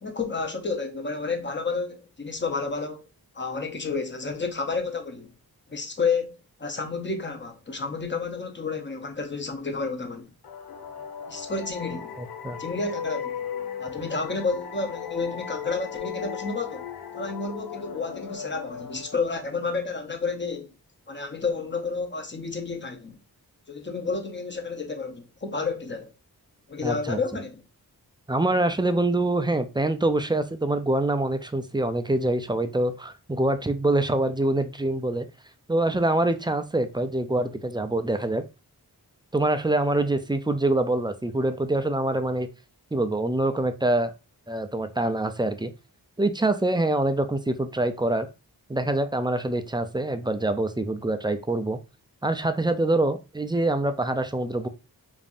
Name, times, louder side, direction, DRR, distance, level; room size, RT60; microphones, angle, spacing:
voice 1, 0.0-3.0 3.3-5.3 5.7-6.3 6.6-10.3 11.3-12.2 12.6-13.5 13.8-16.9 17.1-20.7 21.1-23.2 23.7-26.1 26.7-27.6, left 4 dB, 30° left, 0.8 m, -30 dB
sound 1, 10.4-19.8, left 8 dB, 75° left, 0.6 m, -37 dB
voice 2, 12.2-12.6 26.8-27.2 28.3-35.3 35.7-38.4 39.3-42.5 42.9-44.1 44.5-45.7 46.2-48.3 48.7-51.8 52.2-54.7, right 2 dB, 10° right, 0.4 m, -25 dB
5.2 x 2.6 x 2.5 m
wide cardioid pair, 75°, 39 cm